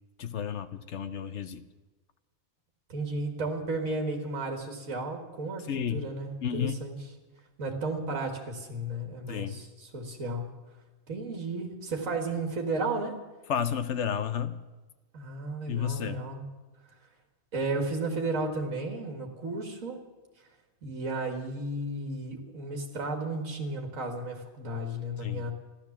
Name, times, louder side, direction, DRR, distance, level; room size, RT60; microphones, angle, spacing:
voice 1, 0.2-1.6 5.7-6.0 6.4-6.9 9.3-9.6 13.5-14.6 15.7-16.2 25.2-25.5, left 8 dB, 65° left, 12 dB, 0.9 m, -31 dB
voice 2, 2.9-7.0 7.6-10.5 11.1-13.2 15.1-16.4 17.5-20.0 20.8-25.5, right 2 dB, 65° right, 4 dB, 2.2 m, -33 dB
14.0 x 12.0 x 7.3 m, 1.2 s
omnidirectional pair, 1.5 m